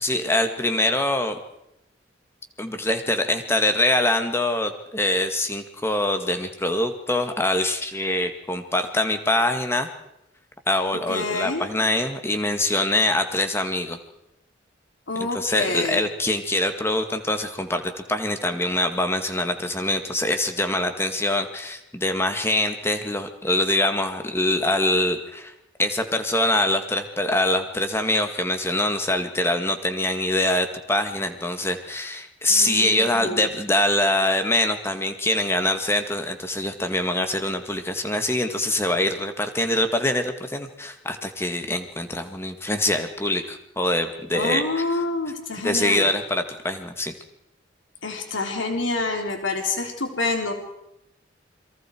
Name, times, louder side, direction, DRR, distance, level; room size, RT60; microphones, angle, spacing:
voice 1, 0.0-1.4 2.6-9.9 10.7-14.0 15.2-17.8 18.1-25.5 25.8-44.9 45.6-47.1, left 1 dB, 15° left, 7 dB, 2.0 m, -24 dB
voice 2, 11.1-11.6 15.1-16.1 32.5-33.5 44.3-46.1 48.0-50.5, left 3 dB, 85° left, 3 dB, 3.5 m, -27 dB
28.5 x 23.0 x 4.6 m, 0.83 s
head